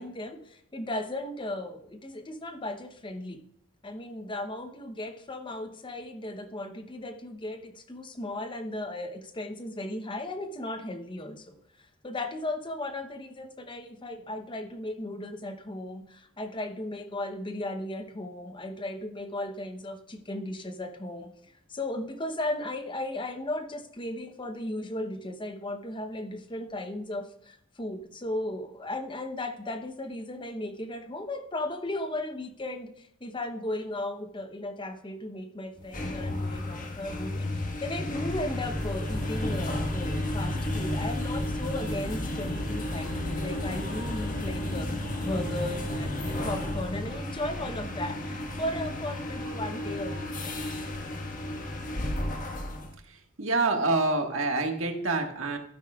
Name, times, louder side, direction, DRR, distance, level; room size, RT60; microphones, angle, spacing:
voice 1, 0.0-3.4 3.8-11.6 12.0-21.3 21.7-50.6, left 1 dB, 25° left, 8 dB, 0.8 m, -36 dB
sound 1, 35.8-52.9, left 1 dB, 40° left, 1.4 m, -32 dB
sound 2, 42.7-50.5, right 3 dB, 60° right, 1.4 m, -45 dB
voice 2, 53.4-55.6, right 3 dB, 75° right, 3 dB, 1.5 m, -26 dB
12.0 x 9.8 x 2.4 m, 0.68 s
head